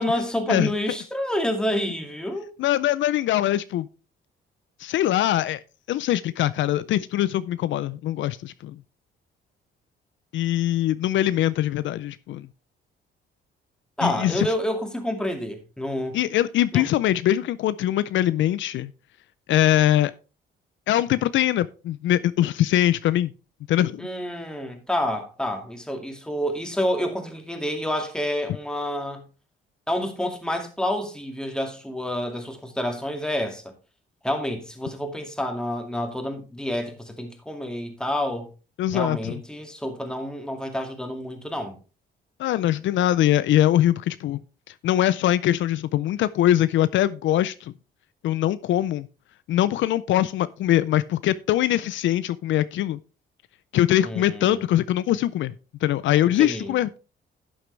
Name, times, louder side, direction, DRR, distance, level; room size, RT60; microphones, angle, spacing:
voice 1, 0.0-2.5 14.0-16.2 16.7-16.9 24.0-29.2 29.9-33.6 34.2-38.5 38.9-41.7 54.0-54.6 56.2-56.7, left 1 dB, 5° left, 2.2 m, -28 dB
voice 2, 2.6-3.9 4.8-5.6 5.9-8.8 10.3-12.5 14.0-14.5 16.1-18.9 19.5-20.1 20.9-23.3 23.7-24.1 38.8-39.3 42.4-44.4 44.7-47.7 48.2-49.1 49.5-53.0 53.7-55.5 55.8-57.0, left 13 dB, 75° left, 0.5 m, -22 dB
11.0 x 7.9 x 3.3 m
cardioid pair, 90°, 20 cm